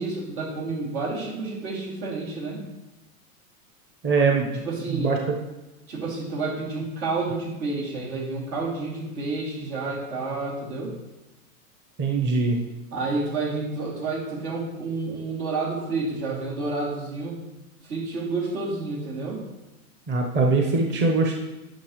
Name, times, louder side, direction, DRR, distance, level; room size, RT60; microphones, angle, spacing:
voice 1, 0.0-2.6 4.6-5.1 5.9-10.9 12.9-17.4 17.8-19.4, right 3 dB, 70° right, -3 dB, 2.8 m, -30 dB
voice 2, 4.0-4.6 4.9-5.2 12.0-12.6 20.1-21.4, right 3 dB, 25° right, 2 dB, 0.9 m, -22 dB
10.0 x 5.8 x 3.1 m, 1.0 s
hypercardioid pair, 110°, 45 cm